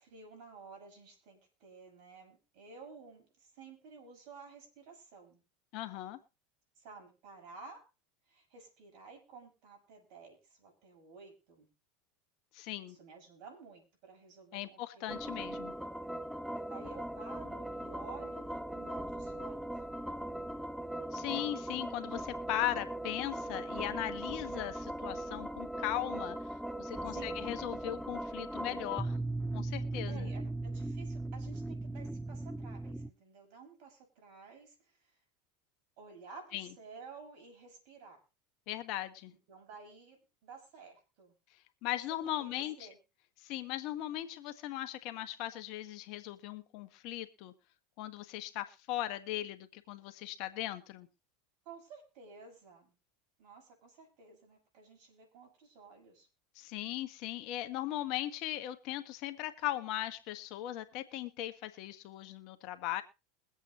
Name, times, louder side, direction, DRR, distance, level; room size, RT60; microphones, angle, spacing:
voice 1, 0.0-5.4 6.8-7.9 8.3-11.7 12.9-15.0 15.4-15.5 16.7-19.8 27.1-27.5 30.1-35.2 36.0-38.2 39.5-41.4 42.4-43.0 51.6-52.9 53.4-56.3, right 4 dB, 65° right, 3 dB, 6.3 m, -53 dB
voice 2, 5.7-6.2 12.5-13.0 14.5-15.7 21.1-26.4 26.8-29.2 29.5-30.3 36.5-36.7 38.7-39.3 41.8-42.9 43.4-47.5 48.0-51.1 56.5-63.0, left 14 dB, 60° left, 9 dB, 1.1 m, -38 dB
sound 1, 15.1-33.1, right 1 dB, ahead, 0.6 m, -39 dB
22.5 x 8.2 x 3.0 m, 0.29 s
hypercardioid pair, 90°, 0 cm